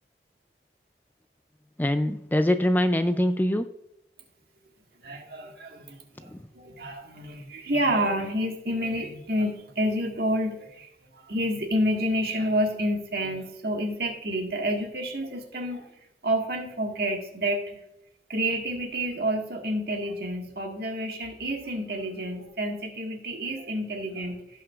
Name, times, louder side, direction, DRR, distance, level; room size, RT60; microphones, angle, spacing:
voice 1, 1.8-3.7 6.2-6.4, left 1 dB, 10° left, 10 dB, 0.3 m, -24 dB
voice 2, 5.0-6.0 6.5-15.9 16.2-17.8 18.3-24.6, equal, 60° right, 2 dB, 1.7 m, -29 dB
16.5 x 5.8 x 2.4 m, 0.85 s
head